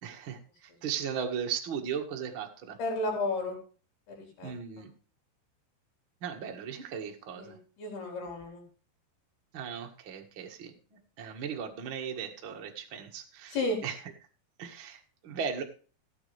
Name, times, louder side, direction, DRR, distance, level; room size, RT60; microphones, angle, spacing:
voice 1, 0.0-2.8 4.4-4.9 6.2-7.6 9.5-13.6 13.8-14.0 14.6-15.6, right 7 dB, 45° right, 2 dB, 1.7 m, -37 dB
voice 2, 2.8-3.6 4.1-4.5 7.4-8.6 13.5-13.8, left 2 dB, 70° left, 1 dB, 6.6 m, -33 dB
17.5 x 9.0 x 3.4 m, 0.38 s
omnidirectional pair, 4.8 m